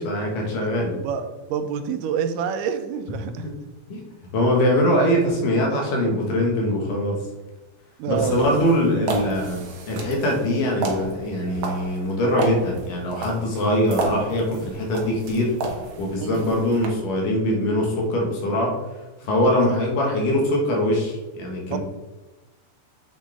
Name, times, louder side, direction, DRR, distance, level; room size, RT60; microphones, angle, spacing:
voice 1, 0.0-1.0 3.9-4.0 4.3-7.2 8.1-15.5 16.0-18.7 19.2-21.8, left 1 dB, 85° left, -1 dB, 3.3 m, -22 dB
voice 2, 1.0-3.5 8.0-8.6 16.2-16.6 19.3-19.8 21.7-21.8, right 7 dB, 90° right, 9 dB, 2.3 m, -28 dB
sound 1, 8.1-16.9, right 3 dB, 55° right, 1.4 m, -33 dB
7.9 x 6.4 x 3.6 m, 1.1 s
omnidirectional pair, 3.6 m